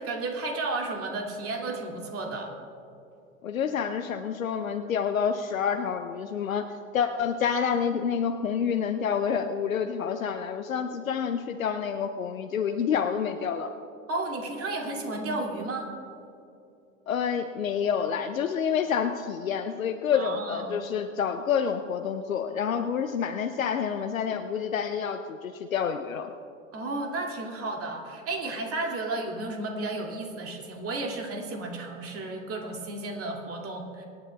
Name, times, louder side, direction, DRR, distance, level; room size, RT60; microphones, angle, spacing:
voice 1, 0.0-2.5 14.1-15.9 20.1-20.8 26.7-34.0, right 2 dB, 35° right, 1 dB, 2.4 m, -33 dB
voice 2, 3.4-6.7 6.9-13.7 17.1-26.3, left 7 dB, 90° left, 7 dB, 0.6 m, -28 dB
25.5 x 9.7 x 2.3 m, 2.7 s
figure-of-eight pair, 80°, 39 cm